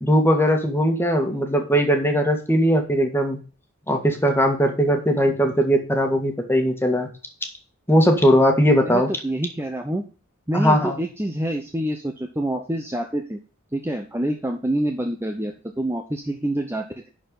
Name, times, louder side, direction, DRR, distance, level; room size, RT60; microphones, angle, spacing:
voice 1, 0.0-3.4 3.9-7.1 7.9-9.1 10.5-11.0, equal, 10° left, 4 dB, 1.8 m, -19 dB
voice 2, 8.8-10.0 10.5-13.4 13.7-17.1, right 1 dB, 10° right, 4 dB, 0.8 m, -27 dB
11.0 x 4.6 x 5.5 m, 0.35 s
head